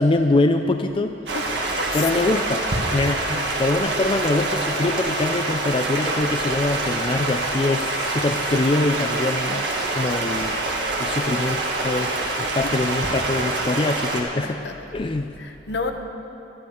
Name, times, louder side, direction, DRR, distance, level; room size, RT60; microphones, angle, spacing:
voice 1, 0.0-1.2 1.9-10.6 11.0-14.6 14.9-15.3, left 2 dB, 30° left, 6 dB, 0.4 m, -24 dB
Stream, 1.3-14.2, right 2 dB, 80° right, 1.9 m, -25 dB
voice 2, 14.4-14.7 15.4-15.9, left 4 dB, 75° left, 5 dB, 1.1 m, -30 dB
12.0 x 11.0 x 7.1 m, 2.8 s
head